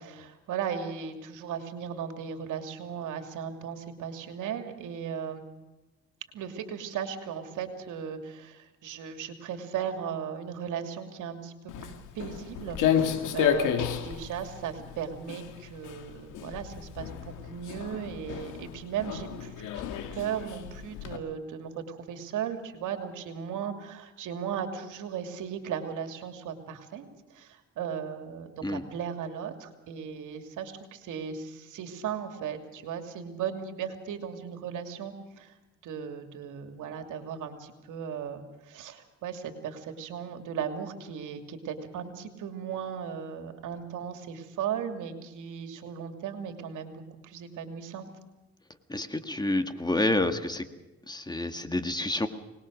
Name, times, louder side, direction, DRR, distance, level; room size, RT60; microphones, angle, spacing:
voice 1, 0.0-5.4 6.3-11.5 12.1-17.1 17.4-19.8 20.1-27.0 27.3-35.5 35.8-48.1, right 8 dB, 85° right, 6 dB, 2.8 m, -36 dB
Walk footsteps, 11.7-21.2, left 9 dB, 90° left, 2.2 m, -32 dB
voice 2, 48.9-50.7 51.1-52.3, left 2 dB, 15° left, 8 dB, 1.8 m, -28 dB
24.5 x 20.0 x 6.5 m, 1.1 s
cardioid pair, 90°, 30 cm